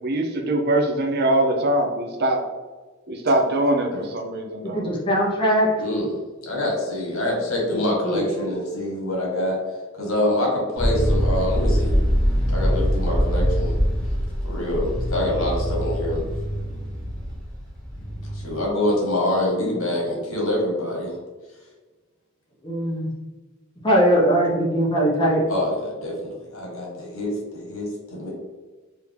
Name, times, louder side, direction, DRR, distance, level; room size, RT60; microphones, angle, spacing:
voice 1, 0.0-2.4 3.1-4.8, right 1 dB, 50° right, 4 dB, 0.6 m, -22 dB
voice 2, 4.6-5.8 8.0-8.5 22.6-23.1 23.8-25.5, equal, 25° left, -3 dB, 1.1 m, -21 dB
voice 3, 5.8-9.6 9.9-12.0 12.5-13.7 14.4-16.2 18.3-21.1 25.5-28.3, left 1 dB, 80° left, -1 dB, 1.4 m, -25 dB
sound 1, 10.8-18.6, equal, 5° left, 1.2 m, -23 dB
4.8 x 2.8 x 3.4 m, 1.3 s
head